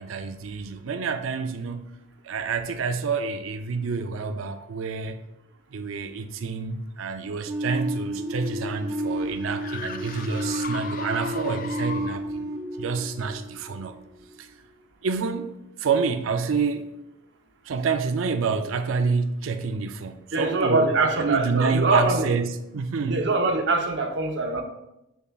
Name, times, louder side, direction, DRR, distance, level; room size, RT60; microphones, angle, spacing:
voice 1, 0.0-1.9 2.2-5.2 5.7-12.5 12.8-14.0 14.4-14.5 15.0-16.9 17.6-23.3, right 5 dB, 90° right, 0.5 m, -28 dB
sound 1, 7.5-14.2, right 1 dB, 15° right, 0.6 m, -31 dB
sound 2, 7.9-12.4, left 5 dB, 45° left, 0.4 m, -38 dB
voice 2, 20.3-22.3 23.0-24.6, right 2 dB, 60° right, 0.9 m, -23 dB
7.0 x 6.9 x 2.4 m
head